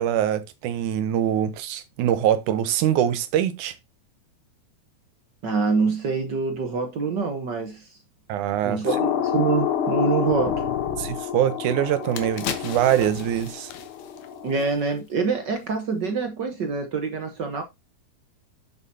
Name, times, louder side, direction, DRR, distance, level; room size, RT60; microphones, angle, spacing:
voice 1, 0.0-3.7 8.3-8.8 11.0-13.7, right 10 dB, 85° right, 2.4 m, -23 dB
voice 2, 5.4-7.9 8.6-10.6 14.4-17.6, right 4 dB, 60° right, 1.1 m, -25 dB
sound 1, 8.9-14.7, left 8 dB, 55° left, 1.8 m, -28 dB
sound 2, 11.4-11.5 11.9-15.2 15.5-15.7, left 8 dB, 75° left, 2.4 m, -37 dB
8.9 x 7.2 x 2.7 m
omnidirectional pair, 3.4 m